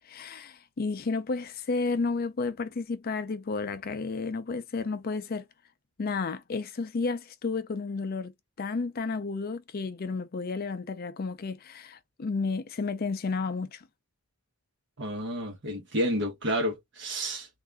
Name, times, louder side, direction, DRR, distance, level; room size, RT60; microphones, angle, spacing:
voice 1, 0.1-5.4 6.0-8.3 8.6-13.9, left 4 dB, 45° left, 0.4 m, -32 dB
voice 2, 15.0-17.5, equal, 55° right, 1.2 m, -30 dB
3.6 x 2.6 x 3.4 m
head